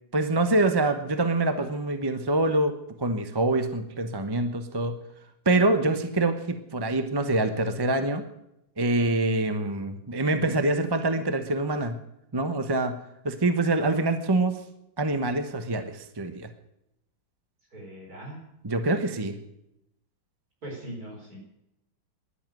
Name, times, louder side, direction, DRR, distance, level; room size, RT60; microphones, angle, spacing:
voice 1, 0.1-2.7 3.0-4.9 5.5-8.2 8.8-12.0 12.3-13.0 13.2-14.6 15.0-16.5 18.6-19.4, right 2 dB, 20° right, 8 dB, 0.6 m, -25 dB
voice 2, 17.7-18.4 20.6-21.4, right 1 dB, 45° right, 0 dB, 5.2 m, -40 dB
11.5 x 11.0 x 9.1 m, 0.83 s
omnidirectional pair, 2.2 m